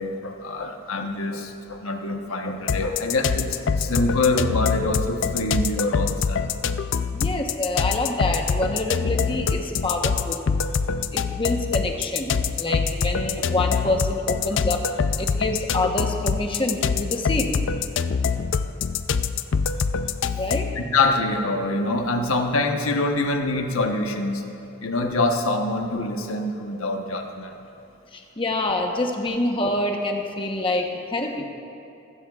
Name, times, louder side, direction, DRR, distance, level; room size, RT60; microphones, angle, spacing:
voice 1, 0.0-6.4 20.8-24.4 24.8-27.5, left 2 dB, 75° left, 4 dB, 1.1 m, -25 dB
sound 1, 2.7-20.8, left 5 dB, 55° left, 0.4 m, -25 dB
voice 2, 7.1-10.5 11.1-14.9 15.2-17.6 20.4-20.7 28.1-31.4, left 2 dB, 25° left, 2 dB, 1.0 m, -26 dB
19.5 x 16.0 x 2.4 m, 2.7 s
head